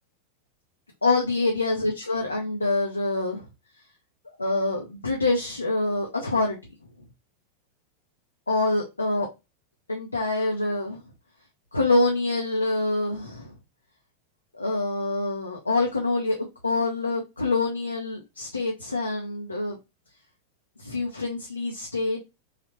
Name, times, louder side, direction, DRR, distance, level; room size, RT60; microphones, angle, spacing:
voice 1, 1.0-3.4 4.4-6.6 8.5-9.3 9.9-11.0 11.7-13.5 14.5-16.4 16.6-19.8 20.8-22.2, left 2 dB, 80° left, 0.6 m, -26 dB
3.2 x 2.3 x 3.0 m
figure-of-eight pair, 90°, 0 cm